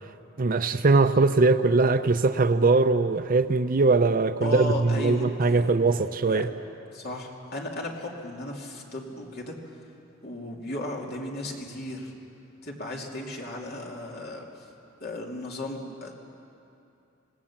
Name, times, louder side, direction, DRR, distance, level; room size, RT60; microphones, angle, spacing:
voice 1, 0.4-6.5, right 3 dB, 45° right, 10 dB, 0.6 m, -21 dB
voice 2, 4.4-5.7 6.3-6.4 6.9-9.7 10.2-12.2 12.6-14.7 15.0-16.2, left 1 dB, 50° left, 0 dB, 2.7 m, -35 dB
26.0 x 18.0 x 7.3 m, 2.7 s
head